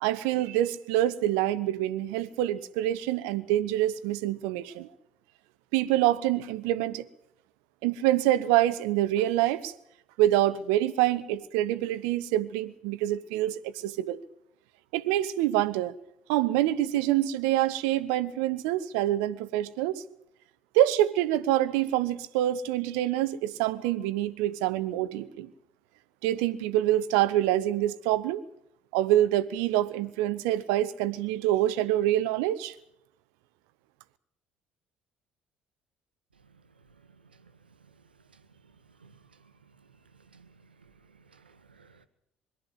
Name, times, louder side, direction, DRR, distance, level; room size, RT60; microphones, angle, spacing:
voice 1, 0.0-4.9 5.7-7.1 7.8-9.7 10.2-14.2 14.9-15.9 16.3-20.0 20.7-25.5 26.2-28.4 28.9-32.7, right 13 dB, 65° right, 16 dB, 0.9 m, -26 dB
voice 2, 40.3-40.9 41.3-42.1, right 5 dB, 80° right, 12 dB, 1.2 m, -58 dB
22.0 x 13.0 x 9.6 m, 0.75 s
figure-of-eight pair, 55°, 5 cm